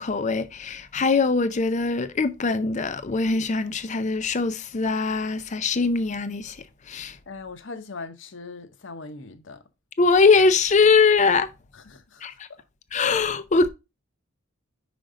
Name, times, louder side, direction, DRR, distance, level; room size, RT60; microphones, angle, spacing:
voice 1, 0.0-7.2 10.0-11.5 12.2-12.5 12.9-13.7, left 4 dB, 35° left, 0.5 m, -22 dB
voice 2, 7.3-9.6 11.7-12.3, left 3 dB, 60° left, 0.8 m, -40 dB
5.2 x 5.2 x 3.7 m
head